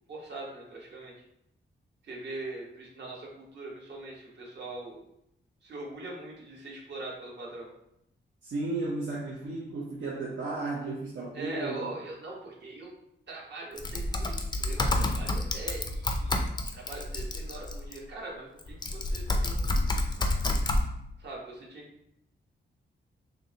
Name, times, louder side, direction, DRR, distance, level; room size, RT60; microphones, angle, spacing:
voice 1, 0.1-1.1 2.0-5.0 5.6-7.7 11.3-12.9 13.3-16.4 16.7-20.1 21.2-22.1, right 2 dB, 60° right, -4 dB, 1.4 m, -42 dB
voice 2, 8.4-11.9, right 2 dB, 80° right, -5 dB, 0.8 m, -34 dB
Typing, 13.8-18.0 18.6-20.8, left 1 dB, 20° left, 0.4 m, -29 dB
6.5 x 2.2 x 2.9 m, 0.77 s
wide cardioid pair, 135°, 20 cm